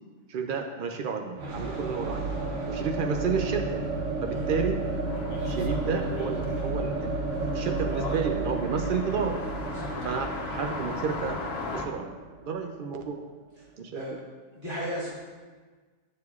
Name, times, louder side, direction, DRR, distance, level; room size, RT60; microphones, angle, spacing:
voice 1, 0.3-2.3 2.7-3.8 4.2-4.8 5.5-7.1 7.5-9.3 10.0-11.4 11.7-12.1 12.4-13.2 13.8-14.0, right 5 dB, 85° right, 4 dB, 0.4 m, -31 dB
sound 1, 1.4-13.2, right 2 dB, 60° right, 1.2 m, -32 dB
sound 2, 5.0-10.1, right 1 dB, 40° right, 1.3 m, -51 dB
sound 3, 5.1-11.9, left 3 dB, 50° left, 0.9 m, -38 dB
voice 2, 9.7-10.1 13.9-14.2 14.5-15.1, equal, 20° right, -12 dB, 1.9 m, -35 dB
8.4 x 6.5 x 2.4 m, 1.4 s
omnidirectional pair, 1.5 m